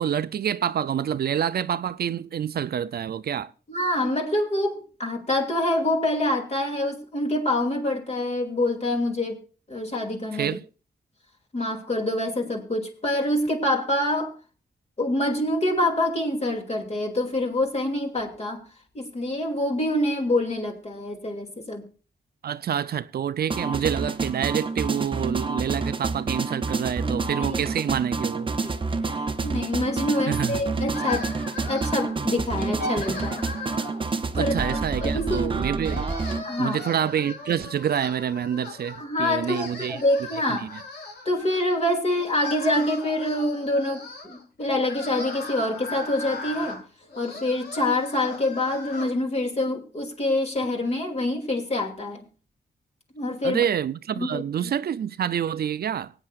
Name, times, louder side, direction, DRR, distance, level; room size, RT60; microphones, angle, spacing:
voice 1, 0.0-3.5 10.3-10.6 22.4-28.5 30.3-30.6 34.4-36.1 36.6-40.0 40.5-40.7 53.4-56.1, right 9 dB, 65° right, 0.5 m, -27 dB
voice 2, 3.7-9.4 9.7-10.6 11.5-14.3 15.0-18.6 18.9-21.9 27.0-27.6 28.6-28.7 29.0-31.3 31.7-33.5 34.3-34.5 35.0-35.6 36.4-36.8 39.0-40.7 41.2-46.8 47.1-52.2 53.1-53.7 54.2-54.8, left 1 dB, 40° left, 2.7 m, -26 dB
sound 1, 23.5-36.4, right 4 dB, 30° right, 0.7 m, -28 dB
sound 2, 30.9-32.2 32.6-34.0 34.5-35.5 35.8-39.0 39.3-41.6 42.2-49.1, left 3 dB, 90° left, 4.4 m, -38 dB
24.5 x 8.8 x 2.5 m
wide cardioid pair, 110°, 17 cm